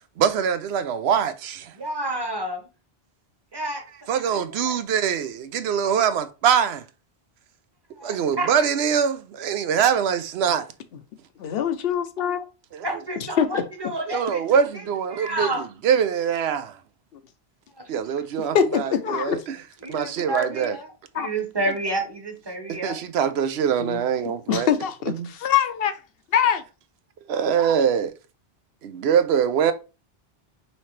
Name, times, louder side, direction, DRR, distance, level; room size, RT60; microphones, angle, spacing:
voice 1, 0.2-1.7 4.1-6.8 8.0-10.7 12.7-12.9 14.1-16.8 17.9-19.6 19.9-20.8 22.8-24.7 25.2-25.3 27.3-28.1 28.8-29.7, right 7 dB, 90° right, 0.9 m, -23 dB
voice 2, 1.8-2.7 3.5-3.8 4.3-4.8 8.0-8.5 12.8-14.6 15.1-15.6 19.8-20.9 21.1-23.0, right 1 dB, 25° right, 1.0 m, -29 dB
voice 3, 11.4-12.4 13.4-13.6 18.5-19.4 21.1-21.3 23.8-24.0 24.5-26.0 26.3-26.6, left 8 dB, 70° left, 0.8 m, -23 dB
5.6 x 2.8 x 3.1 m
omnidirectional pair, 1.0 m